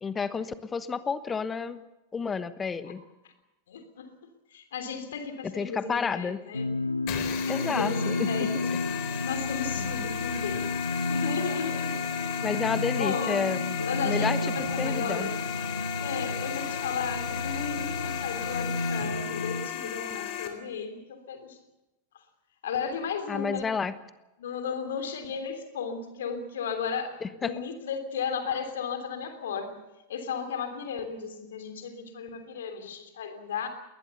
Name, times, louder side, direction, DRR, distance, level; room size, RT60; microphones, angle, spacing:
voice 1, 0.0-1.8 2.1-3.0 5.4-6.4 7.5-8.3 12.4-14.4 14.8-15.3 23.3-23.9 27.2-27.6, left 5 dB, 15° left, 14 dB, 1.2 m, -30 dB
voice 2, 3.7-4.1 4.5-6.7 7.5-8.5 9.2-10.8 11.1-12.0 13.0-13.4 13.8-15.3 16.0-21.6 22.1-22.2 22.6-23.6 24.4-29.8 30.1-33.7, left 6 dB, 60° left, 7 dB, 3.2 m, -35 dB
sound 1, 6.5-19.7, left 2 dB, 85° left, 0.7 m, -32 dB
sound 2, 7.1-20.5, left 10 dB, 45° left, 3.9 m, -35 dB
21.5 x 19.5 x 7.0 m, 0.99 s
figure-of-eight pair, 90°, 0 cm